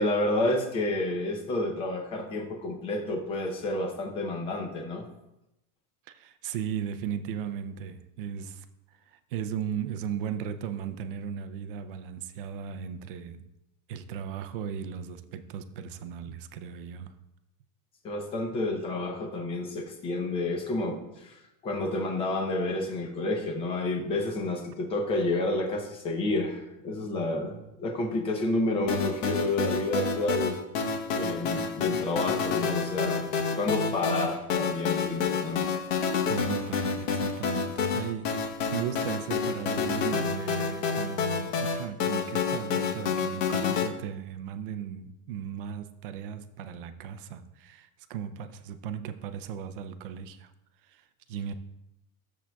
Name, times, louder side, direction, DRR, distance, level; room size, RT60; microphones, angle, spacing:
voice 1, 0.0-5.0 18.0-30.6 31.1-33.2 33.5-35.8, left 2 dB, 15° left, 3 dB, 0.6 m, -30 dB
voice 2, 6.1-8.7 9.0-13.5 13.9-17.1 36.2-50.5 50.8-51.5, right 8 dB, 40° right, 10 dB, 0.4 m, -36 dB
sound 1, 28.9-43.9, left 5 dB, 60° left, 1.0 m, -29 dB
12.5 x 7.3 x 2.3 m, 0.91 s
supercardioid pair, 180°, 42 cm